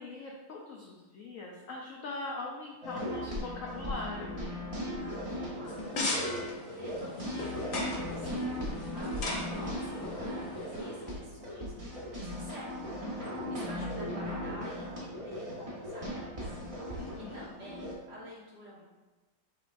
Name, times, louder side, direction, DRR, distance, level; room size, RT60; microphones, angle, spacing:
voice 1, 0.0-4.4 17.0-17.4, left 3 dB, 80° left, -1 dB, 0.7 m, -41 dB
sound 1, 2.8-17.9, equal, 35° right, 0.5 m, -37 dB
voice 2, 5.0-6.2 6.7-18.8, equal, 65° right, -7 dB, 2.0 m, -50 dB
sound 2, 5.6-11.1, left 2 dB, 55° left, 1.0 m, -38 dB
6.1 x 3.5 x 2.5 m, 1.2 s
omnidirectional pair, 2.0 m